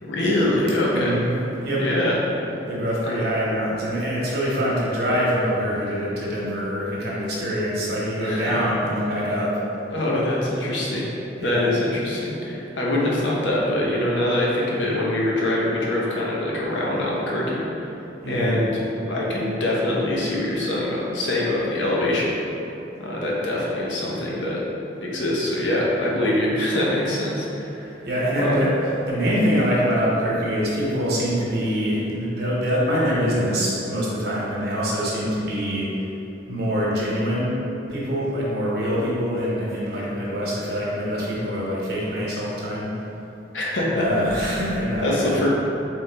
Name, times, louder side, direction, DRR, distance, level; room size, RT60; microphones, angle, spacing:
voice 1, 0.0-1.2 1.8-2.2 8.2-8.5 9.9-11.0 11.4-17.6 18.3-18.8 19.1-22.3 23.0-24.6 25.0-28.0 28.4-28.6 43.5-44.6 45.0-45.5, left 1 dB, 75° left, -4 dB, 0.9 m, -24 dB
voice 2, 0.9-1.3 1.6-1.8 2.7-9.6 11.4-11.6 18.2-18.5 28.0-28.7 29.1-35.9 36.5-37.6 37.9-42.9 44.0-45.4, equal, 55° right, -6 dB, 1.1 m, -24 dB
4.2 x 3.5 x 3.4 m, 3.0 s
head